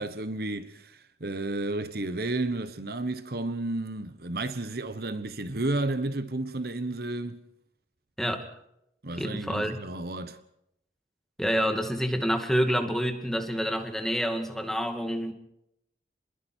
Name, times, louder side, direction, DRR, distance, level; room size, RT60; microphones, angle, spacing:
voice 1, 0.0-7.4 9.0-10.4, right 2 dB, 60° right, 1.2 m, -32 dB
voice 2, 9.2-9.8 11.4-15.3, equal, ahead, 2.3 m, -28 dB
30.0 x 22.0 x 4.6 m
head